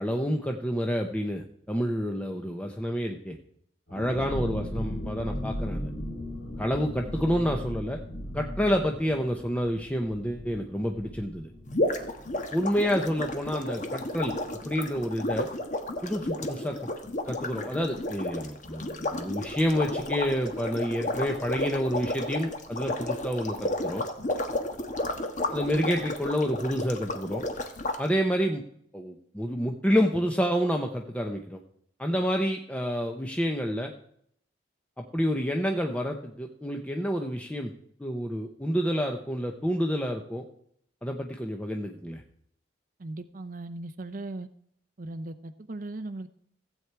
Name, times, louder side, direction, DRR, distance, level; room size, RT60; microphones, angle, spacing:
voice 1, 0.0-3.4 3.9-5.9 6.6-8.0 8.3-11.5 12.5-14.3 14.6-15.5 16.0-16.8 17.3-24.0 25.5-27.4 28.0-28.6 28.9-31.6 32.0-33.9 35.0-37.7 38.0-40.4 41.0-42.2, equal, 5° left, 3 dB, 0.8 m, -28 dB
sound 1, 3.9-13.3 13.6-13.7 14.0-14.3, equal, 70° left, 4.0 m, -37 dB
voice 2, 4.3-4.7 43.0-44.5 45.0-46.3, right 2 dB, 45° right, 9 dB, 0.6 m, -38 dB
sound 2, 11.7-28.0, left 1 dB, 40° left, 1.3 m, -32 dB
15.5 x 8.2 x 4.6 m, 0.68 s
head